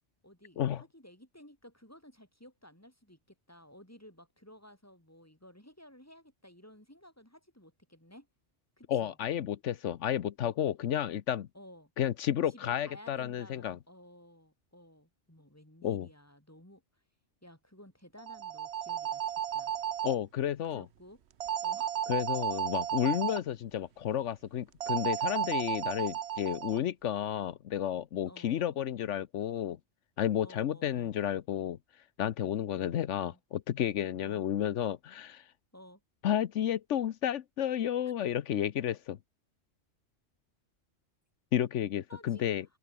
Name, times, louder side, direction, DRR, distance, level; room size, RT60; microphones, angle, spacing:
voice 1, 0.2-8.3 8.8-9.2 11.5-11.9 12.5-17.0 17.4-19.7 20.7-21.2 21.6-21.9 28.3-28.8 30.4-31.2 32.7-33.4 34.2-34.5 35.7-36.0 42.1-42.5, left 1 dB, 10° left, 5.3 m, -55 dB
voice 2, 8.9-11.5 12.0-13.8 15.8-16.1 20.0-20.8 22.1-29.8 30.2-31.8 32.2-35.5 36.2-39.2 41.5-42.6, left 10 dB, 85° left, 1.1 m, -32 dB
sound 1, 18.2-20.1 21.4-23.4 24.8-26.8, right 9 dB, 65° right, 1.1 m, -33 dB
open air
omnidirectional pair, 1.2 m